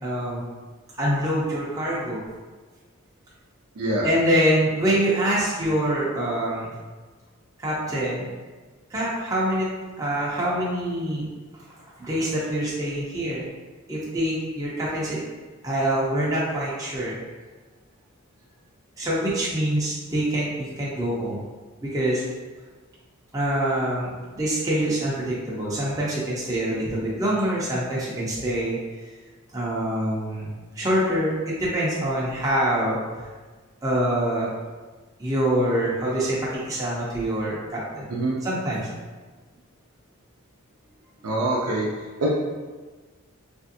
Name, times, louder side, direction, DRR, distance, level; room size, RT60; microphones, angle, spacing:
voice 1, 0.0-0.4 1.0-2.2 4.0-6.8 7.6-8.3 8.9-9.7 10.0-11.3 12.0-13.4 13.9-15.2 15.6-17.2 19.0-21.4 21.8-22.2 23.3-28.8 29.5-33.3 33.8-34.5 35.2-36.4 36.6-38.1 38.4-38.9, right 1 dB, 15° right, -7 dB, 0.5 m, -25 dB
voice 2, 41.2-41.9 42.2-42.3, right 1 dB, 85° right, -4 dB, 0.5 m, -24 dB
3.2 x 2.5 x 2.6 m, 1.3 s
head